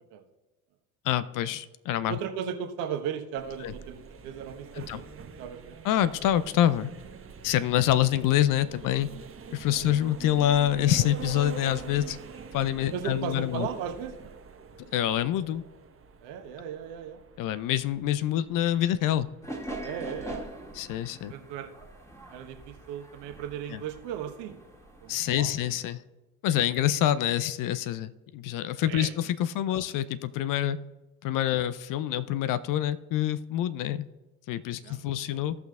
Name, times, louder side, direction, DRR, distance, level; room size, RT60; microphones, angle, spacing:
voice 1, 1.0-2.2 3.6-3.7 4.8-5.0 5.8-6.9 7.4-9.1 9.5-12.2 12.5-13.7 14.9-15.6 17.4-19.3 20.7-21.3 23.7-23.8 25.1-26.0 26.4-30.8 31.2-34.0 34.5-35.6, left 12 dB, 45° left, 15 dB, 0.5 m, -26 dB
voice 2, 2.1-4.0 4.2-5.8 9.7-9.9 12.9-14.3 16.2-17.2 19.8-20.4 21.3-21.7 22.3-24.7 25.0-25.5 28.8-29.1 29.7-29.8 34.8-35.4, right 8 dB, 65° right, 5 dB, 1.2 m, -36 dB
sound 1, 3.4-20.7, right 5 dB, 30° right, 1.1 m, -45 dB
sound 2, 19.4-25.9, right 1 dB, 5° left, 2.0 m, -43 dB
16.5 x 5.9 x 2.3 m, 1.1 s
figure-of-eight pair, 55°, 45 cm